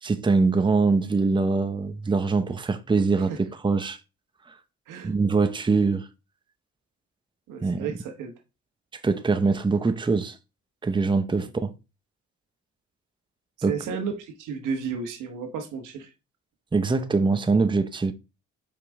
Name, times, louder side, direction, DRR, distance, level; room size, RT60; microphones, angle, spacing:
voice 1, 0.0-4.0 5.0-6.1 7.6-7.9 9.0-10.4 10.8-11.7 13.6-13.7 16.7-18.1, right 4 dB, 15° right, 0.7 m, -23 dB
voice 2, 7.5-8.3 13.6-16.1, right 6 dB, 90° right, 1.3 m, -33 dB
5.2 x 5.1 x 3.6 m
cardioid pair, 90°, 30 cm